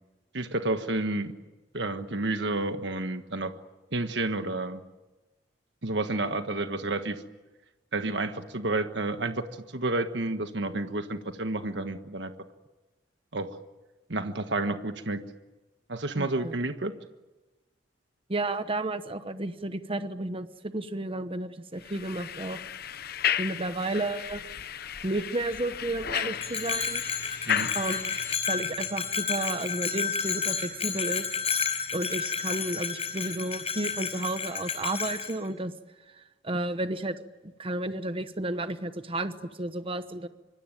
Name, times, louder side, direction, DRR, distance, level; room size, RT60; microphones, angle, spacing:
voice 1, 0.3-1.3 1.7-3.5 3.9-4.8 5.8-7.2 7.9-9.5 9.7-12.3 13.3-13.5 14.1-15.2 15.9-16.9 27.5-27.7, right 2 dB, 70° right, 8 dB, 1.5 m, -30 dB
voice 2, 16.1-16.6 18.3-22.6 23.4-24.4 25.0-27.0 27.7-28.1 28.5-31.3 31.9-35.7 36.1-37.2 37.6-40.3, right 2 dB, 30° right, 10 dB, 1.0 m, -32 dB
sound 1, 21.8-28.4, left 9 dB, 60° left, 0.9 m, -33 dB
Bell, 26.4-35.3, left 6 dB, 35° left, 4.6 m, -31 dB
26.0 x 24.5 x 9.2 m, 1.1 s
head